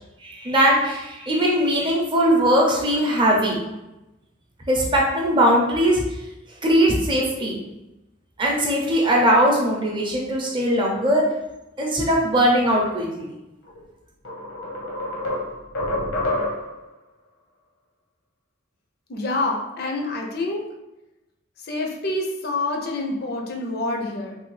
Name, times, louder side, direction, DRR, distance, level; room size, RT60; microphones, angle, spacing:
voice 1, 0.2-3.6 4.7-6.0 6.6-7.6 8.4-11.2 11.8-13.3, equal, 25° right, -2 dB, 0.6 m, -20 dB
sound 1, 13.7-13.8 14.2-16.8, left 1 dB, 85° left, 0.8 m, -27 dB
voice 2, 19.1-20.6 21.6-24.4, left 2 dB, 50° left, 1 dB, 0.5 m, -27 dB
3.3 x 2.3 x 3.1 m, 0.96 s
head